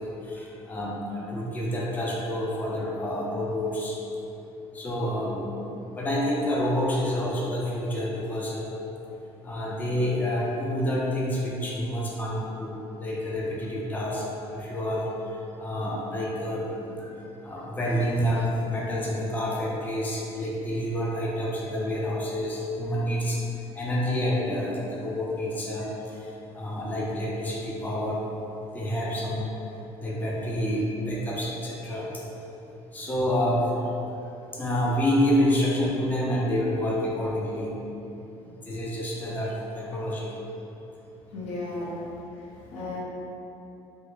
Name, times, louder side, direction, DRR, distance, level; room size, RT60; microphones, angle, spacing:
voice 1, 0.0-4.0 4.7-5.5 6.0-8.7 9.4-14.2 14.5-15.1 15.6-17.1 17.4-23.4 23.7-25.9 26.5-28.2 28.7-29.5 30.0-32.3 32.9-33.7 34.5-37.7 38.4-40.3, equal, 15° left, -4 dB, 0.4 m, -28 dB
voice 2, 41.3-42.1 42.7-43.0, left 2 dB, 90° left, -6 dB, 0.8 m, -34 dB
3.3 x 2.2 x 3.0 m, 2.9 s
cardioid pair, 140°, 11 cm